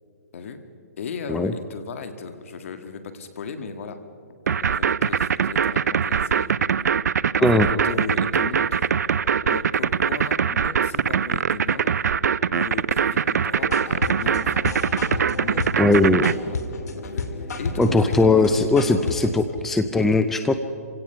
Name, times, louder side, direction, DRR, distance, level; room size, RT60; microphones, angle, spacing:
voice 1, 1.0-4.0 4.5-6.7 7.4-8.9 9.4-12.0 12.5-14.6 15.4-16.6 17.0-17.3 17.6-19.1 19.4-19.7, left 5 dB, 55° left, 8 dB, 1.8 m, -36 dB
sound 1, 4.5-16.3, right 7 dB, 85° right, 0.5 m, -22 dB
sound 2, 13.5-19.3, left 3 dB, 75° left, 2.3 m, -31 dB
voice 2, 15.8-16.3 17.8-20.5, left 2 dB, 5° left, 9 dB, 0.4 m, -19 dB
27.0 x 17.0 x 5.7 m, 2.4 s
hypercardioid pair, 160°, 9 cm